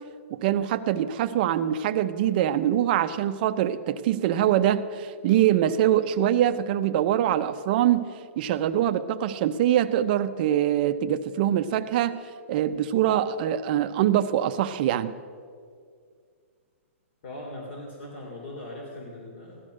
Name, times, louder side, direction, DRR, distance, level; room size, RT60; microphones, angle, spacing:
voice 1, 0.3-12.2 12.5-15.1, right 11 dB, 40° right, 10 dB, 0.7 m, -24 dB
voice 2, 17.2-19.6, left 1 dB, 50° left, 0 dB, 3.1 m, -39 dB
16.0 x 12.5 x 6.5 m, 2.1 s
hypercardioid pair, 155°, 7 cm